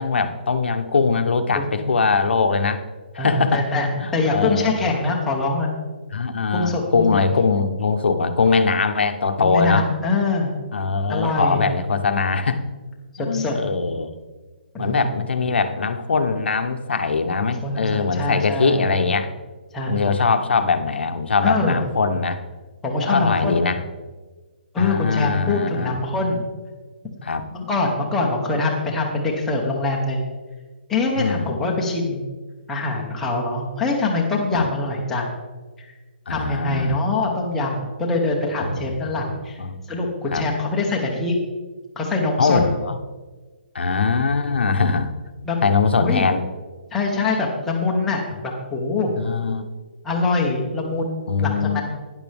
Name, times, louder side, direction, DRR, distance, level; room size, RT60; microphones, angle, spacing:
voice 1, 0.0-2.8 3.1-3.6 4.0-4.8 6.1-9.9 10.7-12.6 13.2-14.2 14.8-19.3 19.9-22.4 23.0-23.8 24.8-26.0 27.2-27.5 31.2-31.5 34.5-34.7 36.3-37.0 38.6-38.8 39.6-39.8 40.3-40.4 42.4-43.0 43.7-45.1 45.6-46.4 49.1-49.6 51.3-51.8, left 4 dB, 80° left, 8 dB, 1.0 m, -21 dB
voice 2, 3.2-5.7 6.5-7.2 9.4-10.5 11.1-11.6 13.1-13.5 14.7-15.1 17.4-18.9 19.7-20.1 21.4-21.8 22.8-23.6 24.7-26.5 27.3-30.2 30.9-32.2 32.7-35.3 36.3-39.6 39.9-41.4 42.0-42.6 45.4-45.6 46.0-46.3 46.9-49.1 50.0-51.8, left 3 dB, 5° left, -2 dB, 1.0 m, -24 dB
12.0 x 10.0 x 3.5 m, 1.3 s
hypercardioid pair, 175°, 6 cm